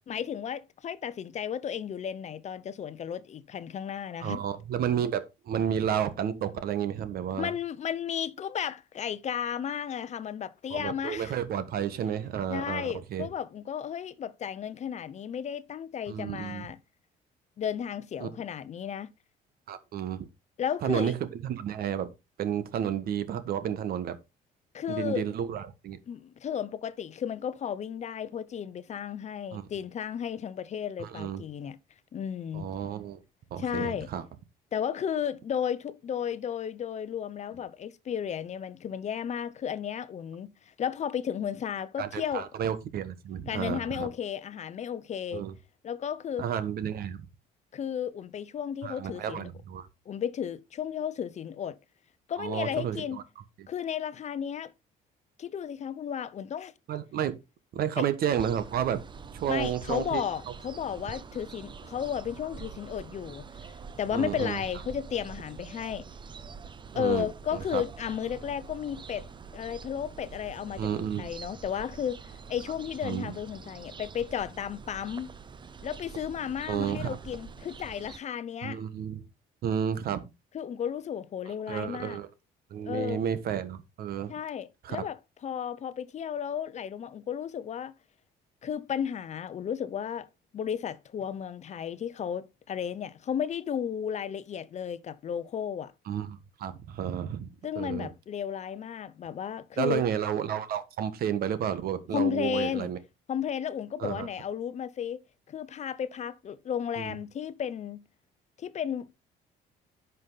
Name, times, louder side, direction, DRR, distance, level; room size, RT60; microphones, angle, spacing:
voice 1, 0.1-4.4 7.4-11.3 12.5-16.8 17.6-19.1 20.6-21.1 24.7-25.3 26.1-31.8 32.1-32.7 33.6-34.1 34.7-40.5 40.8-42.5 43.5-45.4 45.8-46.5 47.7-49.5 50.1-51.8 52.3-53.2 53.7-54.7 55.4-56.7 58.0-58.1 59.5-63.5 64.0-66.0 66.9-69.3 69.5-75.3 75.8-78.8 80.5-82.2 82.9-83.2 84.3-87.9 88.6-90.3 90.5-95.9 97.6-100.0 102.1-102.9 103.3-105.2 105.5-108.0 108.6-109.2, left 8 dB, 45° left, 0.7 m, -33 dB
voice 2, 4.2-7.5 10.7-13.3 16.1-16.7 18.2-18.3 19.7-20.3 20.8-22.1 22.4-24.2 24.9-26.0 29.5-29.7 31.0-31.4 32.5-33.2 33.5-34.2 42.0-44.1 45.3-45.5 46.4-47.2 48.8-49.9 52.4-53.2 53.6-53.7 56.9-57.4 57.7-59.0 59.3-60.3 64.1-64.6 66.9-67.8 70.8-71.3 73.0-73.3 76.7-77.2 78.6-79.2 79.6-80.2 81.7-82.3 82.7-84.3 84.8-85.0 96.1-97.5 97.7-98.1 99.8-103.0 104.0-104.3 107.0-107.2, right 9 dB, 65° right, 1.4 m, -31 dB
sound 1, 58.3-78.2, right 5 dB, 30° right, 0.7 m, -45 dB
10.5 x 5.5 x 4.0 m
cardioid pair, 110°, 17 cm